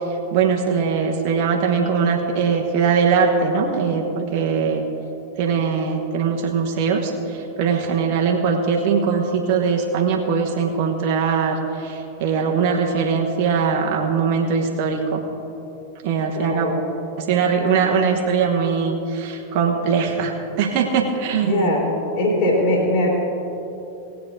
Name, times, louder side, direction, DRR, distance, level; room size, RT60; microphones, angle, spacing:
voice 1, 0.3-4.8 5.4-15.2 16.0-16.7 17.2-21.7, right 5 dB, 45° right, 1 dB, 1.2 m, -21 dB
voice 2, 16.3-16.8 21.4-21.8 22.1-23.1, left 1 dB, 45° left, -2 dB, 3.0 m, -20 dB
19.0 x 8.4 x 3.8 m, 3.0 s
figure-of-eight pair, 90°, 0 cm